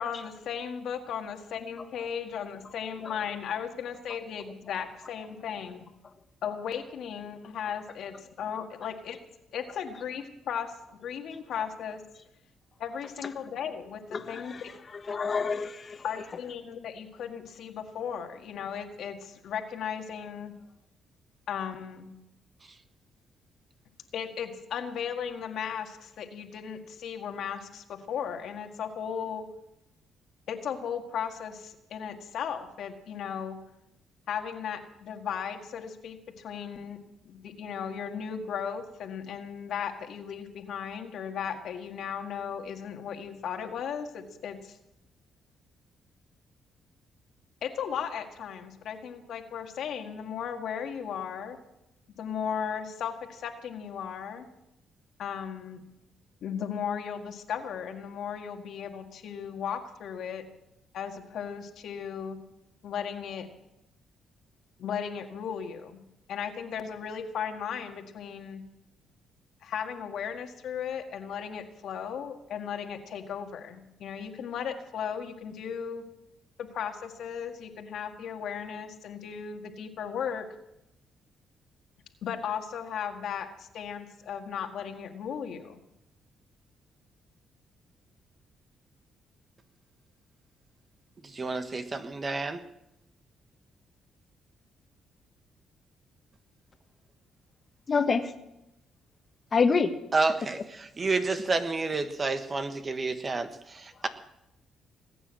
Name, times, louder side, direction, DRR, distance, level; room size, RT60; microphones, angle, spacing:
voice 1, 0.0-5.9 6.4-9.2 9.5-10.7 11.0-12.0 12.8-14.7 16.0-20.5 21.5-22.1 24.1-29.5 30.5-33.6 34.3-37.0 37.2-44.8 47.6-51.6 52.2-54.5 55.2-55.8 56.4-60.4 60.9-62.4 62.8-63.5 64.8-66.0 66.3-68.6 69.6-76.0 76.6-80.5 82.2-85.8, left 7 dB, 75° left, 4 dB, 1.8 m, -36 dB
voice 2, 14.1-14.6 15.1-16.0 97.9-98.3 99.5-99.9, left 5 dB, 40° left, 8 dB, 1.5 m, -26 dB
voice 3, 91.2-92.6 100.1-104.1, right 3 dB, 35° right, 8 dB, 1.4 m, -30 dB
19.5 x 9.0 x 7.6 m, 0.88 s
cardioid pair, 85°, 0 cm